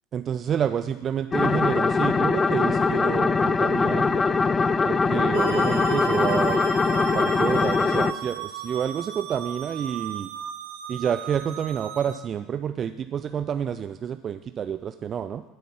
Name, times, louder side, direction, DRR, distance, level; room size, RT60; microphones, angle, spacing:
voice 1, 0.1-4.2 4.9-6.6 7.1-10.3 10.9-15.4, right 8 dB, 35° right, 11 dB, 0.4 m, -29 dB
sound 1, 1.3-8.1, left 4 dB, 20° left, 0.5 m, -22 dB
sound 2, 5.3-12.2, right 8 dB, 60° right, 1.1 m, -35 dB
13.0 x 8.1 x 5.9 m, 1.1 s
figure-of-eight pair, 70°, 0 cm